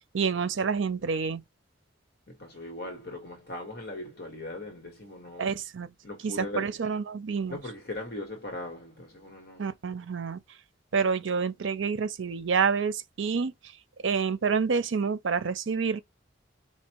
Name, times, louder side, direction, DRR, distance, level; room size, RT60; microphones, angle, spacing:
voice 1, 0.1-1.4 5.4-5.9 6.2-7.6 9.6-10.4 10.9-13.7 14.0-16.0, right 5 dB, 75° right, 0.5 m, -28 dB
voice 2, 2.3-5.6 6.0-6.8 7.5-9.7, left 2 dB, 55° left, 1.6 m, -39 dB
4.5 x 2.7 x 2.9 m
head